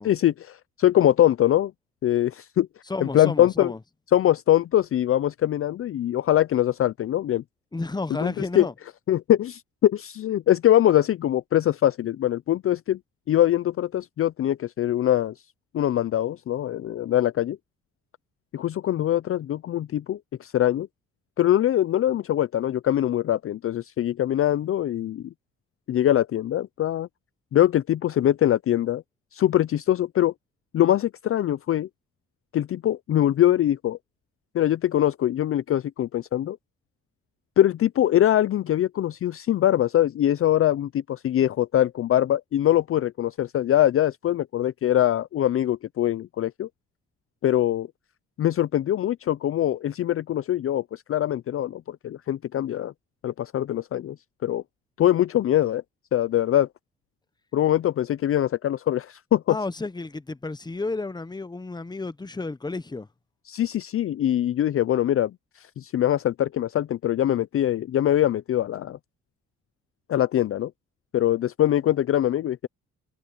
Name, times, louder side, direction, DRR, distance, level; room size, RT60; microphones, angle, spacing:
voice 1, 0.0-1.7 2.0-2.7 3.0-3.7 4.1-7.4 8.2-8.7 9.1-13.0 13.3-15.3 15.7-17.6 18.5-20.9 21.4-25.2 25.9-27.1 27.5-29.0 29.3-30.3 30.7-31.9 32.5-34.0 34.5-36.6 37.6-46.7 47.4-47.9 48.4-52.9 53.2-54.2 54.4-54.6 55.0-55.8 56.1-56.7 57.5-59.6 63.5-65.3 65.6-69.0 70.1-70.7 71.1-72.7, left 12 dB, 45° left, 0.5 m, -23 dB
voice 2, 2.9-3.8 7.7-8.7 59.5-63.1, left 3 dB, 15° left, 1.0 m, -32 dB
cardioid pair, 90°, 30 cm